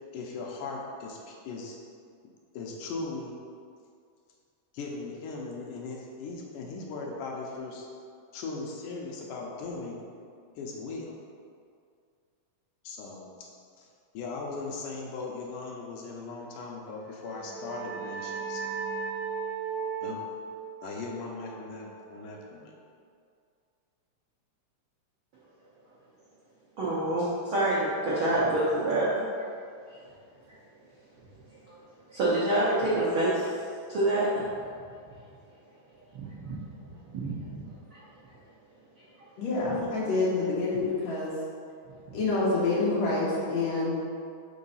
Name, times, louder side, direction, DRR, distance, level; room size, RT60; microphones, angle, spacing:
voice 1, 0.1-1.8 2.5-3.3 4.7-7.9 8.3-10.0 10.6-11.2 12.8-13.5 13.8-13.9 14.1-18.8 20.0-20.2 20.8-22.7, left 3 dB, 80° left, -1 dB, 2.2 m, -38 dB
sound 1, 17.1-22.5, right 5 dB, 90° right, 2.2 m, -37 dB
voice 2, 26.8-29.1 32.1-33.5 33.9-34.3 36.1-36.5 37.1-37.6 37.9-38.0 39.7-39.8, right 1 dB, 70° right, -9 dB, 1.2 m, -27 dB
voice 3, 39.4-41.3 42.1-44.0, left 3 dB, 60° left, -7 dB, 2.1 m, -27 dB
5.3 x 3.9 x 5.5 m, 2.3 s
omnidirectional pair, 3.8 m